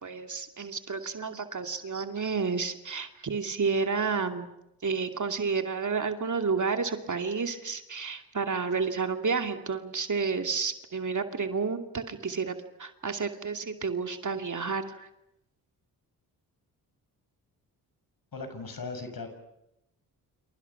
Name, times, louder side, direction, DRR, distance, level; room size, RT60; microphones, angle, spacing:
voice 1, 0.0-4.5 4.8-15.1, right 5 dB, 45° right, 6 dB, 2.6 m, -31 dB
voice 2, 18.3-19.3, left 3 dB, 55° left, 8 dB, 6.7 m, -38 dB
29.5 x 27.0 x 5.9 m, 0.84 s
hypercardioid pair, 45°, 43 cm